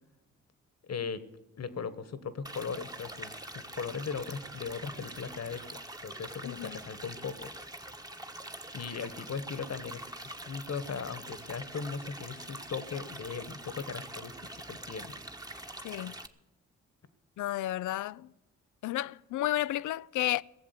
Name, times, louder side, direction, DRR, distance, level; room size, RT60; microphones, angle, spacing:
voice 1, 0.8-1.2 1.6-7.5 8.7-14.3 14.7-15.1, left 5 dB, 50° left, 1.4 m, -38 dB
sound 1, 2.4-16.3, right 1 dB, 10° right, 1.3 m, -44 dB
voice 2, 6.4-6.8 15.8-16.1 17.4-18.3 18.8-20.4, left 15 dB, 65° left, 0.5 m, -32 dB
17.0 x 7.3 x 9.5 m
hypercardioid pair, 45°, 33 cm